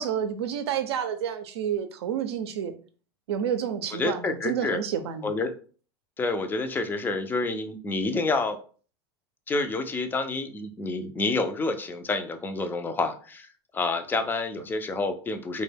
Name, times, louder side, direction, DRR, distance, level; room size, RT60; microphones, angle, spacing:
voice 1, 0.0-2.7 3.3-5.3, right 8 dB, 90° right, 0.5 m, -29 dB
voice 2, 3.9-4.8 5.2-5.5 6.2-8.6 9.5-13.5 13.7-15.6, left 3 dB, 15° left, 0.3 m, -28 dB
2.1 x 2.1 x 3.3 m
supercardioid pair, 120°, 13 cm